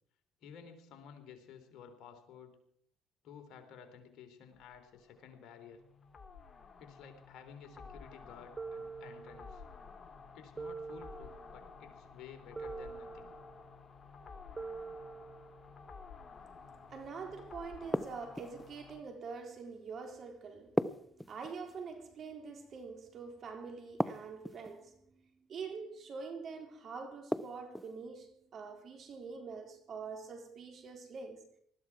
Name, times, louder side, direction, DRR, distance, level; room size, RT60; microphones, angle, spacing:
voice 1, 0.4-2.6 3.2-5.8 6.8-9.6 10.3-13.3, left 7 dB, 70° left, 3.4 m, -53 dB
sound 1, 4.5-19.0, left 5 dB, 45° left, 1.9 m, -53 dB
sound 2, 8.6-9.7 10.6-11.7 12.6-13.7 14.6-15.7, right 4 dB, 25° right, 0.7 m, -45 dB
voice 2, 16.3-31.4, right 5 dB, 55° right, 3.7 m, -45 dB
sound 3, 17.9-18.7 20.8-21.8 24.0-24.7 27.3-27.9, equal, 5° left, 0.9 m, -35 dB
20.0 x 14.0 x 4.7 m
supercardioid pair, 65°, 0 cm